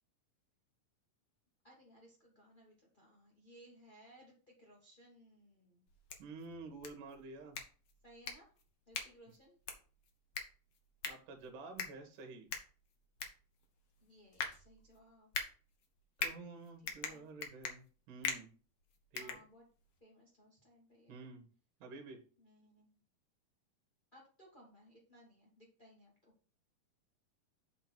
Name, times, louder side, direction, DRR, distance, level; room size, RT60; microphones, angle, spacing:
voice 1, 1.6-5.8 8.0-8.5 8.9-9.6 14.0-15.3 16.8-17.2 19.2-19.7 20.0-21.2 22.4-23.0 24.1-26.3, equal, 30° left, -3 dB, 0.8 m, -62 dB
sound 1, 5.9-20.0, left 6 dB, 65° left, 1.4 m, -45 dB
voice 2, 6.2-7.6 11.0-12.5 16.2-18.5 19.1-19.4 21.1-21.5 21.8-22.2, right 3 dB, 70° right, 4 dB, 3.0 m, -50 dB
8.1 x 3.9 x 5.9 m, 0.39 s
omnidirectional pair, 3.9 m